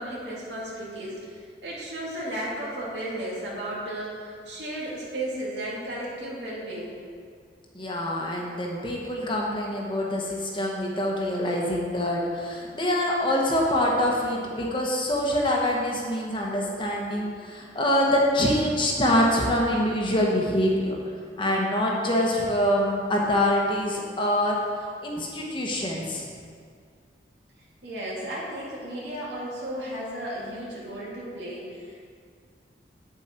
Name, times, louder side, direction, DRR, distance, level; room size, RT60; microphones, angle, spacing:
voice 1, 0.0-6.9 27.8-32.1, right 1 dB, 80° right, -6 dB, 2.5 m, -34 dB
voice 2, 7.7-21.0 21.4-24.6 25.0-26.3, left 1 dB, 30° left, -1 dB, 1.2 m, -25 dB
8.8 x 7.6 x 4.5 m, 2.1 s
head